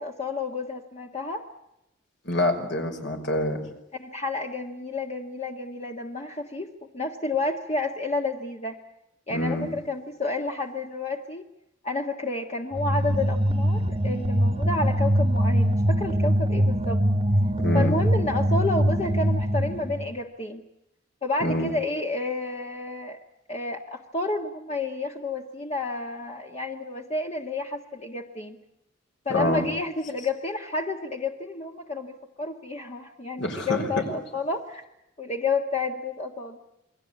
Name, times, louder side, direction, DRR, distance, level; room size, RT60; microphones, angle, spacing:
voice 1, 0.0-1.4 4.0-6.7 6.9-8.8 9.3-11.5 11.8-17.0 17.7-20.6 21.2-23.2 23.5-28.6 29.2-34.8 35.2-36.6, left 3 dB, 35° left, 1 dB, 1.6 m, -30 dB
voice 2, 2.2-3.6 9.3-9.7 17.6-18.0 21.4-21.7 29.3-29.6 33.4-33.9, left 1 dB, 65° left, 4 dB, 5.5 m, -26 dB
sound 1, 12.7-20.1, equal, 30° right, 1.3 m, -23 dB
28.5 x 21.0 x 8.5 m, 0.87 s
head